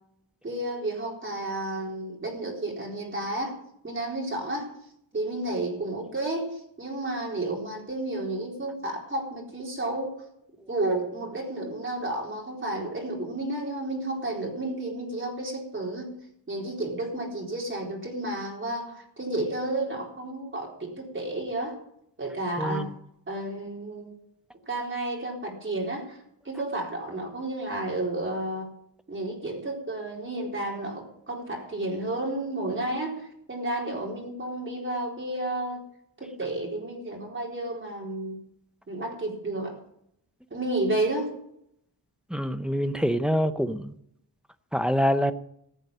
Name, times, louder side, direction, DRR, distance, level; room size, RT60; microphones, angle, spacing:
voice 1, 0.4-3.5 3.8-4.7 5.1-10.1 10.7-16.1 16.5-21.8 22.2-22.9 23.3-24.2 24.7-26.2 26.4-28.7 29.1-35.8 36.2-38.4 38.9-39.8 40.5-41.3, right 2 dB, 25° right, -1 dB, 4.0 m, -31 dB
voice 2, 22.6-22.9 42.3-43.9 44.7-45.3, equal, ahead, 9 dB, 0.6 m, -25 dB
15.0 x 8.2 x 8.9 m, 0.74 s
wide cardioid pair, 160°, 45 cm